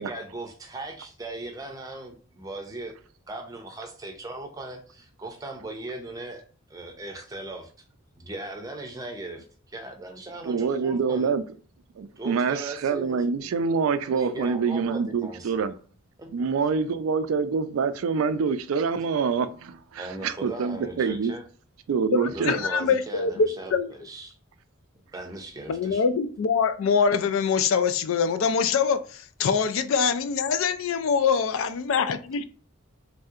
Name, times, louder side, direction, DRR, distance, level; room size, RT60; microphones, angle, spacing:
voice 1, 0.0-2.9 3.3-6.4 6.7-7.7 8.2-11.3 12.2-13.2 14.1-15.7 20.0-21.4 22.3-24.4 25.1-26.0, right 2 dB, 15° right, 0.5 m, -38 dB
voice 2, 10.4-11.4 12.0-15.7 16.3-21.3 21.9-22.5, right 5 dB, 80° right, 0.3 m, -26 dB
voice 3, 22.1-23.9 25.7-32.4, left 6 dB, 70° left, 0.3 m, -24 dB
3.2 x 2.7 x 2.4 m
head